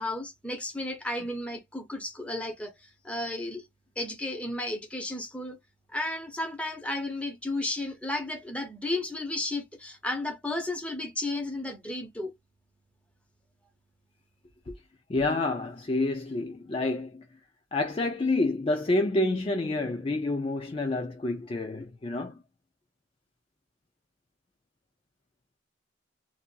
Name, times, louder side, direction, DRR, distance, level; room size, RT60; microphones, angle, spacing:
voice 1, 0.0-3.6 4.0-5.6 5.9-12.3, left 2 dB, 5° left, 0.7 m, -33 dB
voice 2, 15.1-17.2 17.7-22.4, left 2 dB, 30° left, 0.4 m, -28 dB
2.7 x 2.6 x 2.2 m
head